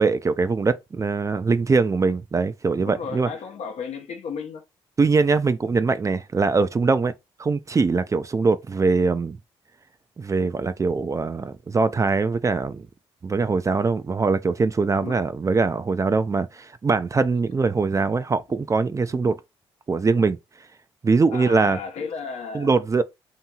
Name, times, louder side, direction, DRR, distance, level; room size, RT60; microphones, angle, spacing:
voice 1, 0.0-3.3 5.0-7.1 7.4-9.4 10.2-12.9 13.2-19.4 19.9-20.4 21.0-21.8 22.5-23.0, right 4 dB, 30° right, 0.3 m, -22 dB
voice 2, 2.8-4.6 15.0-15.2 19.1-19.3 21.3-22.7, left 6 dB, 70° left, 0.8 m, -34 dB
2.8 x 2.7 x 2.3 m
supercardioid pair, 55°, 11 cm